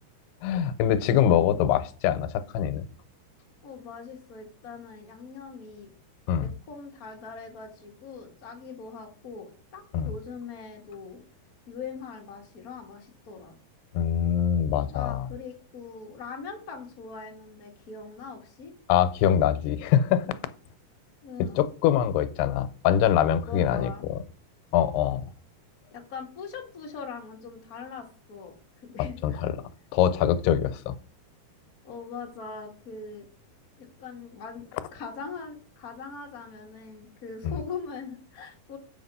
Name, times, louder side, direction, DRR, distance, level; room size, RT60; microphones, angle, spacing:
voice 1, 0.4-2.9 6.3-6.5 9.9-10.1 13.9-15.3 18.9-20.4 21.6-23.9 24.7-25.2 29.0-29.6 29.9-30.9 37.4-37.5, left 9 dB, 90° left, 13 dB, 2.7 m, -24 dB
voice 2, 3.6-5.9 6.4-11.2 11.7-13.6 14.9-18.7 21.2-21.6 23.5-24.0 25.9-28.5 28.8-29.4 31.8-33.3 33.8-38.8, left 5 dB, 50° left, 1 dB, 1.0 m, -41 dB
7.7 x 5.9 x 5.4 m, 0.40 s
omnidirectional pair, 4.5 m